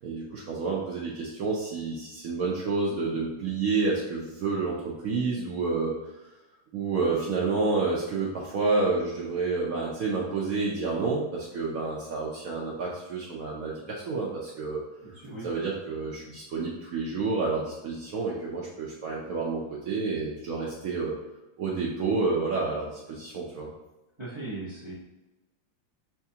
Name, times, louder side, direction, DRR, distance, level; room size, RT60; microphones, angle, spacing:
voice 1, 0.0-5.9 6.7-14.8 15.4-21.1 21.6-23.7, right 4 dB, 90° right, -4 dB, 0.7 m, -29 dB
voice 2, 15.0-15.5 24.2-24.9, right 2 dB, 25° right, -9 dB, 0.6 m, -38 dB
5.9 x 2.4 x 2.7 m, 1.0 s
omnidirectional pair, 2.2 m